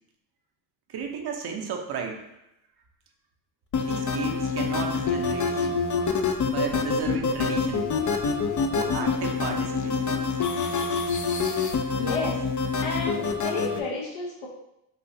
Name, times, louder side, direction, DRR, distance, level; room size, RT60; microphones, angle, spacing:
voice 1, 0.9-2.3 3.8-5.9 6.4-7.9 8.7-10.1, right 6 dB, 55° right, 3 dB, 0.9 m, -34 dB
sound 1, 3.7-13.8, left 5 dB, 40° left, 0.6 m, -26 dB
voice 2, 12.0-12.4 12.8-14.5, left 3 dB, 70° left, -3 dB, 1.0 m, -31 dB
5.7 x 2.7 x 2.8 m, 0.85 s
supercardioid pair, 70°, 47 cm